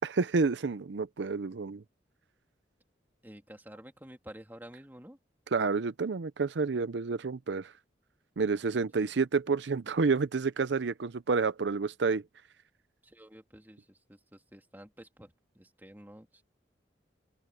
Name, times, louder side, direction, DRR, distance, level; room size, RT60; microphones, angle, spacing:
voice 1, 0.0-1.8 5.5-7.7 8.4-12.2, right 4 dB, 75° right, 0.5 m, -29 dB
voice 2, 3.2-5.2 9.0-9.1 13.0-16.4, equal, 10° right, 2.7 m, -51 dB
open air
head